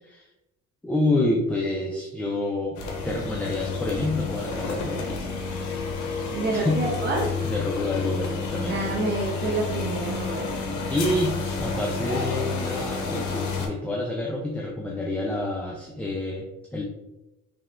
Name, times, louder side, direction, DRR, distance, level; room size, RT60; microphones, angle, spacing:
voice 1, 0.8-2.8 3.0-5.3 6.5-6.8 7.4-8.8 10.9-16.5 16.7-16.8, left 2 dB, 5° left, -1 dB, 0.4 m, -28 dB
sound 1, 2.8-13.7, left 4 dB, 75° left, 0.7 m, -30 dB
voice 2, 6.3-7.3 8.7-10.5, right 2 dB, 35° right, -3 dB, 0.7 m, -28 dB
3.4 x 2.8 x 2.4 m, 0.96 s
cardioid pair, 90°, 30 cm